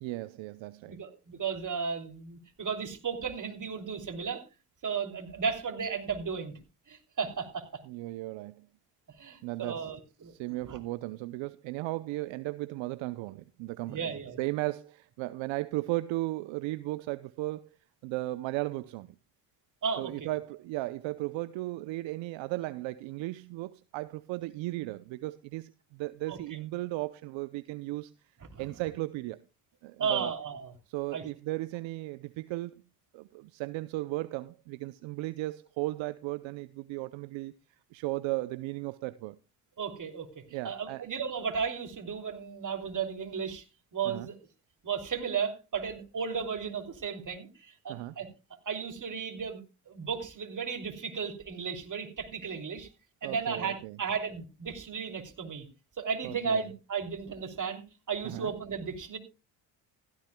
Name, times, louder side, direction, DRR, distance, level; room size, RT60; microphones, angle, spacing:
voice 1, 0.0-1.0 7.8-8.7 9.4-9.9 10.2-17.7 18.0-19.1 20.0-28.1 28.6-29.4 29.8-30.3 30.9-32.8 33.1-37.5 37.9-39.4 40.5-41.0 44.0-44.3 47.9-48.2 53.2-54.0 56.2-56.7 58.2-58.5, right 19 dB, 75° right, 0.7 m, -36 dB
voice 2, 0.9-4.4 4.8-6.6 6.9-7.7 9.2-10.8 13.9-14.4 19.8-20.4 26.3-26.4 28.5-28.7 30.0-30.7 31.1-31.2 39.8-43.6 43.9-44.4 44.8-48.3 48.7-49.6 49.9-52.9 53.2-55.7 56.0-57.8 58.1-59.2, right 6 dB, 40° right, 3.0 m, -34 dB
16.0 x 13.5 x 2.2 m
supercardioid pair, 70°, 47 cm